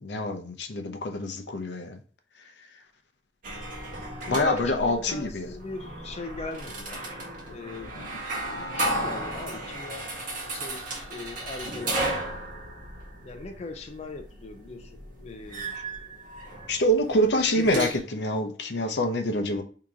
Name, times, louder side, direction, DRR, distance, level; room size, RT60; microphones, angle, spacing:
voice 1, 0.0-2.0 4.3-5.5 8.0-8.1 16.7-19.6, equal, 75° left, 6 dB, 0.7 m, -26 dB
sound 1, 3.4-18.0, right 1 dB, 50° right, 1.4 m, -35 dB
voice 2, 4.2-7.1 7.4-8.1 8.5-10.1 10.5-12.1 13.2-14.9 15.2-15.7 17.4-17.9, left 3 dB, 35° left, 4 dB, 0.4 m, -38 dB
3.7 x 2.9 x 4.8 m, 0.42 s
head